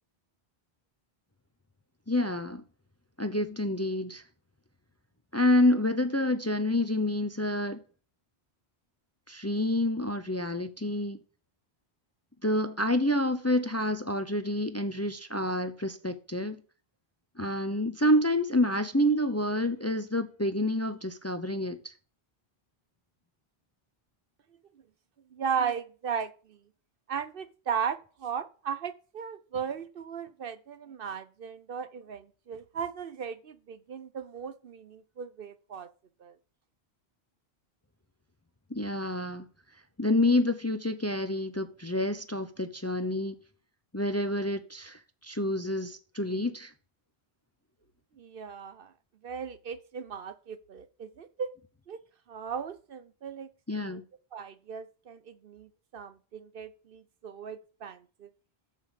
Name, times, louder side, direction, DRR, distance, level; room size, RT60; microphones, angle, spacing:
voice 1, 2.1-2.6 3.2-4.2 5.3-7.8 9.3-11.2 12.4-16.6 17.4-21.9 38.7-39.5 40.0-43.4 43.9-46.7 53.7-54.0, left 1 dB, 15° left, 0.6 m, -28 dB
voice 2, 25.3-26.6 27.1-35.9 36.2-36.4 48.2-48.9 49.2-51.5 51.9-52.0 52.3-53.5 53.8-54.0 54.3-58.3, right 7 dB, 60° right, 0.9 m, -37 dB
7.4 x 7.1 x 6.5 m
omnidirectional pair, 1.1 m